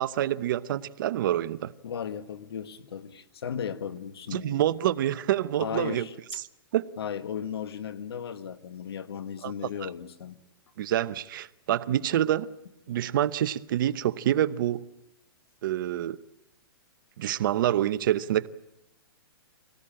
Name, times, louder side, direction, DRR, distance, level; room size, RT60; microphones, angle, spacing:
voice 1, 0.0-1.7 4.3-6.1 6.7-6.9 9.4-9.5 9.8-9.9 10.8-12.5 12.9-14.8 15.6-16.2 17.2-18.5, right 12 dB, 55° right, 0.9 m, -27 dB
voice 2, 1.8-4.6 5.6-6.1 7.0-10.4 12.9-13.0, left 8 dB, 80° left, 1.6 m, -36 dB
25.0 x 18.0 x 8.9 m
hypercardioid pair, 145°, 13 cm